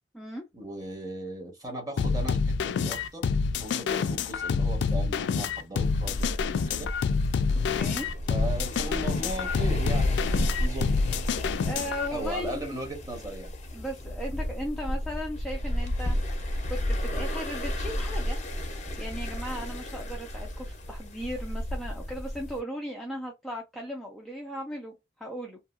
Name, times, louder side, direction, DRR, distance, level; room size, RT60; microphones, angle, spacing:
voice 1, 0.5-2.4 2.7-6.9 8.3-11.0 12.1-13.5, right 1 dB, 20° right, 1.1 m, -37 dB
sound 1, 2.0-12.1, left 5 dB, 65° left, 0.3 m, -27 dB
sound 2, 5.8-22.6, equal, 40° left, 0.7 m, -33 dB
voice 2, 7.7-8.1 11.6-12.6 13.7-16.2 16.7-18.4 19.0-25.6, equal, ahead, 0.5 m, -37 dB
2.8 x 2.4 x 2.4 m
head